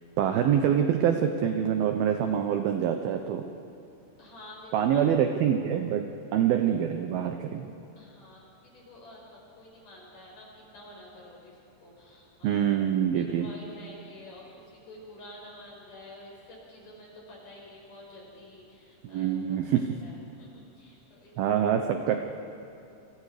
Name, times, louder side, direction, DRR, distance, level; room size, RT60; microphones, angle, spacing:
voice 1, 0.2-3.4 4.7-6.1 6.3-7.7 12.4-13.5 19.0-20.0 21.4-22.2, right 9 dB, 80° right, 6 dB, 2.2 m, -25 dB
voice 2, 4.2-5.1 8.0-12.7 13.1-21.6, left 1 dB, 45° left, -3 dB, 6.8 m, -49 dB
29.0 x 26.5 x 5.0 m, 2.6 s
omnidirectional pair, 5.5 m